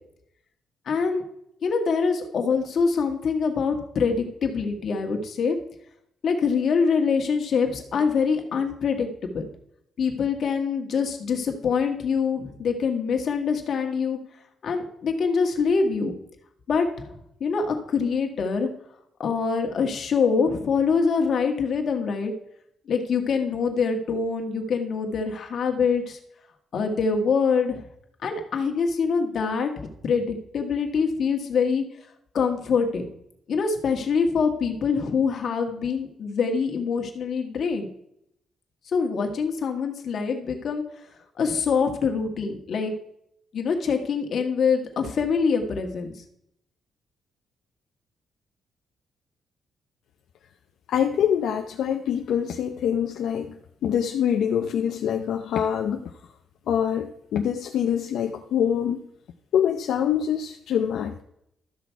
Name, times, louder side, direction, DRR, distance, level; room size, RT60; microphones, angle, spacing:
voice 1, 0.8-1.2 1.6-5.6 6.2-9.1 9.3-9.5 10.0-14.2 14.6-16.1 16.7-17.1 17.4-18.7 19.2-22.3 22.9-26.2 26.7-27.8 28.2-31.8 32.3-33.1 33.5-37.9 38.9-40.8 41.4-42.9 43.5-46.1, left 5 dB, 50° left, 3 dB, 1.6 m, -24 dB
voice 2, 50.9-56.1 56.7-59.0 59.5-61.2, left 9 dB, 75° left, 3 dB, 0.6 m, -25 dB
12.5 x 6.3 x 4.6 m, 0.75 s
cardioid pair, 135°, 0 cm